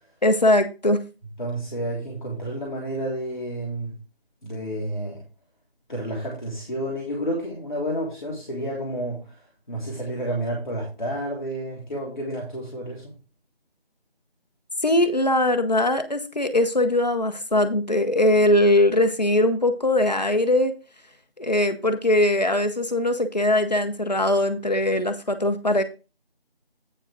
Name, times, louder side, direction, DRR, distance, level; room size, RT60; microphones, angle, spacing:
voice 1, 0.2-1.0 14.8-20.7 21.4-25.8, left 1 dB, 45° left, 8 dB, 1.0 m, -21 dB
voice 2, 1.4-3.9 4.4-5.2 5.9-9.4 9.7-13.1, right 1 dB, 5° left, -15 dB, 1.7 m, -30 dB
8.7 x 5.4 x 5.0 m, 0.31 s
figure-of-eight pair, 165°, 30 cm